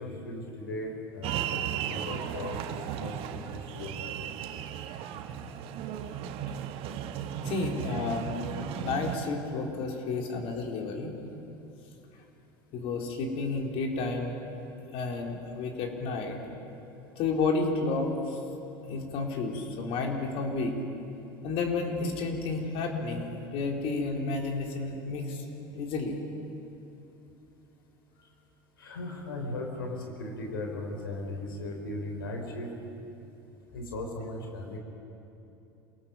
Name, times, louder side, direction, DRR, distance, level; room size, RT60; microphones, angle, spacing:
voice 1, 0.0-1.6 1.9-2.6 2.9-4.1 28.8-32.7 33.7-34.8, left 2 dB, 85° left, 2 dB, 3.7 m, -37 dB
sound 1, 1.2-9.2, right 9 dB, 55° right, 1.5 m, -35 dB
voice 2, 7.4-11.1 12.7-14.3 14.9-16.4 17.2-18.4 18.9-20.8 21.4-26.2, left 3 dB, 55° left, 1 dB, 4.0 m, -31 dB
27.5 x 18.5 x 7.4 m, 2.9 s
hypercardioid pair, 85°, 11 cm